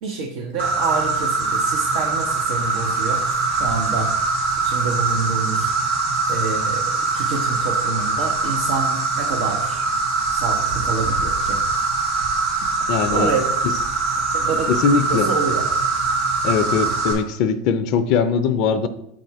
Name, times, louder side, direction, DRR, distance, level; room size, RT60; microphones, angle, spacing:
voice 1, 0.0-3.2 3.5-4.1 4.6-5.7 6.3-9.9 10.3-11.6 13.1-13.5 14.3-14.7 15.1-15.7, right 4 dB, 65° right, 1 dB, 0.9 m, -27 dB
Insect, 0.6-17.1, right 3 dB, 80° right, 2.5 m, -22 dB
voice 2, 12.9-13.3 13.6-13.7 14.7-15.3 16.4-18.9, left 6 dB, 55° left, 11 dB, 0.4 m, -20 dB
7.5 x 4.2 x 4.6 m, 0.81 s
hypercardioid pair, 90°, 0 cm